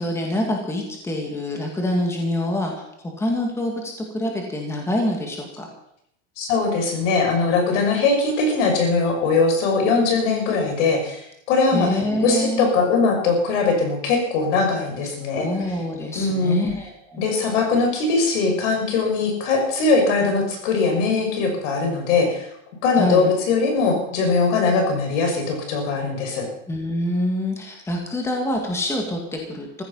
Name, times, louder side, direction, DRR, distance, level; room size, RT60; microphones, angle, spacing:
voice 1, 0.0-5.7 11.7-12.7 15.4-17.2 22.9-23.3 26.7-29.8, left 1 dB, 5° left, 1 dB, 2.2 m, -26 dB
voice 2, 6.4-11.9 12.2-15.5 16.1-16.6 17.2-22.5 22.8-26.5, left 4 dB, 65° left, 3 dB, 6.2 m, -21 dB
15.5 x 15.0 x 5.6 m, 0.76 s
supercardioid pair, 160°, 39 cm